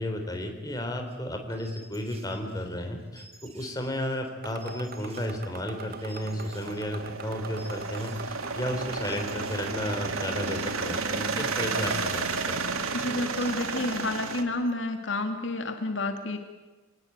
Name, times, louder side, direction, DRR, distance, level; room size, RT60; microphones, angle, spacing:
voice 1, 0.0-12.6, left 1 dB, 20° left, 4 dB, 3.4 m, -33 dB
sound 1, 1.1-6.8 7.1-8.5 8.8-14.7, right 3 dB, 30° right, 3.3 m, -53 dB
sound 2, 4.4-12.3, right 5 dB, 45° right, 1.2 m, -45 dB
sound 3, 5.4-14.4, right 4 dB, 85° right, 2.0 m, -32 dB
voice 2, 12.9-16.4, left 2 dB, 60° left, 6 dB, 1.8 m, -30 dB
27.0 x 18.5 x 9.1 m, 1.3 s
head